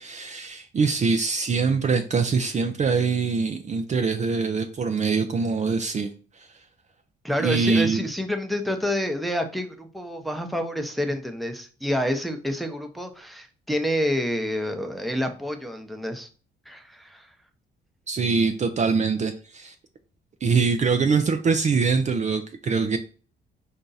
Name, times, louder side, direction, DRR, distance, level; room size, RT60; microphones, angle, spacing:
voice 1, 0.0-6.1 6.4-6.5 7.4-8.0 18.1-19.7 20.4-23.0, right 5 dB, 35° right, 0.5 m, -23 dB
voice 2, 7.2-16.3 16.7-17.3, equal, ahead, 0.8 m, -28 dB
4.4 x 2.7 x 3.9 m
cardioid pair, 90°, 20 cm